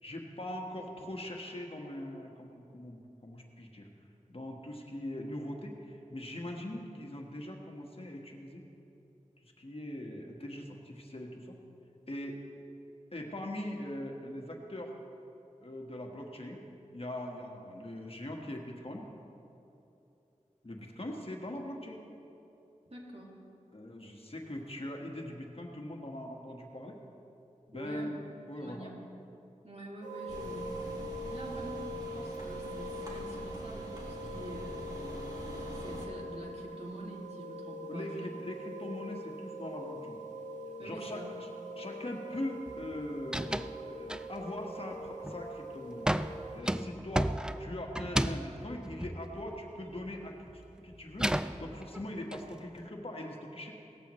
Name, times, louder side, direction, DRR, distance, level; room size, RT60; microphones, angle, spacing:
voice 1, 0.0-3.9 4.3-8.6 9.4-11.6 12.1-12.4 13.1-14.9 15.6-16.6 16.9-19.1 20.6-22.1 23.7-27.0 27.7-28.1 28.5-28.9 34.2-34.3 37.9-40.2 40.8-41.5 41.7-46.1 46.5-53.7, left 1 dB, 45° left, 1 dB, 1.5 m, -41 dB
voice 2, 22.9-23.3 27.7-28.1 28.6-28.9 29.6-31.0 31.3-31.9 32.1-34.8 35.4-38.3 40.8-41.3, right 1 dB, 50° right, -2 dB, 2.3 m, -46 dB
sound 1, 30.0-46.6, equal, 65° right, 1.9 m, -43 dB
sound 2, 30.3-36.1, equal, 30° right, 2.7 m, -44 dB
sound 3, 42.7-42.9 43.2-43.8 44.1-44.6 45.1-45.5 46.1-50.1 50.4-52.4, right 1 dB, 5° right, 0.3 m, -33 dB
17.5 x 14.0 x 3.1 m, 2.9 s
wide cardioid pair, 50°, 13 cm